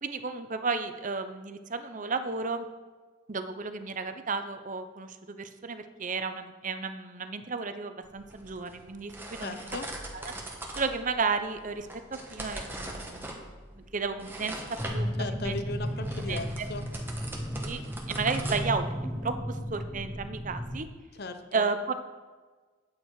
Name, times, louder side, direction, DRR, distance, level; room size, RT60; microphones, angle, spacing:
voice 1, 0.0-2.7 3.3-9.8 10.1-13.3 13.8-14.6 14.9-15.6 16.3-16.7 17.6-17.8 18.1-18.9 19.2-20.9 21.5-21.9, right 4 dB, 40° right, 9 dB, 0.6 m, -33 dB
sound 1, 8.0-19.2, right 1 dB, 10° right, 1.1 m, -42 dB
voice 2, 9.4-9.9 15.2-16.9 21.1-21.7, left 2 dB, 50° left, 9 dB, 0.7 m, -37 dB
sound 2, 14.8-20.8, equal, 10° left, 1.0 m, -34 dB
9.2 x 8.3 x 4.7 m, 1.4 s
head